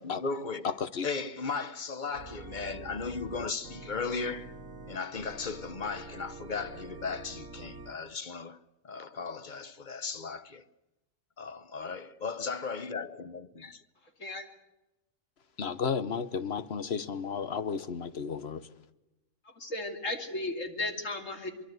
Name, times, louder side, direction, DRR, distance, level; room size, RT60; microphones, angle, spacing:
voice 1, 0.0-0.7 1.0-4.5 4.9-8.6 8.8-10.6 11.4-13.8, left 4 dB, 40° left, 1.0 m, -36 dB
voice 2, 0.6-1.1 15.6-18.7, left 6 dB, 55° left, 1.3 m, -33 dB
Organ, 2.1-8.0, right 3 dB, 75° right, 1.7 m, -46 dB
voice 3, 19.6-21.5, left 2 dB, 80° left, 3.1 m, -35 dB
24.5 x 23.0 x 8.0 m
omnidirectional pair, 1.3 m